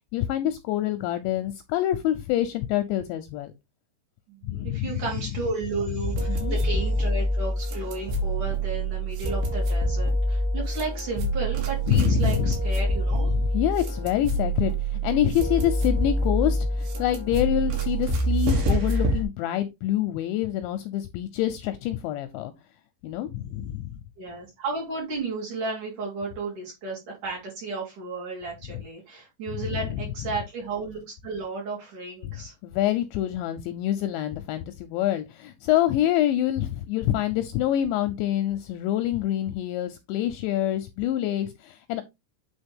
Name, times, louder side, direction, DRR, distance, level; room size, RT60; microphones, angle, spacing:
voice 1, 0.1-3.5 4.4-5.0 6.4-6.6 11.9-12.5 13.3-14.7 15.0-22.5 23.0-24.0 29.7-29.8 32.2-32.4 32.6-42.0, left 12 dB, 80° left, 2.6 m, -26 dB
voice 2, 4.3-13.3 23.3-23.7 24.2-32.5, right 3 dB, 45° right, 4.1 m, -33 dB
sound 1, 6.0-19.2, right 1 dB, 70° right, 4.0 m, -26 dB
8.8 x 4.3 x 3.5 m
omnidirectional pair, 5.6 m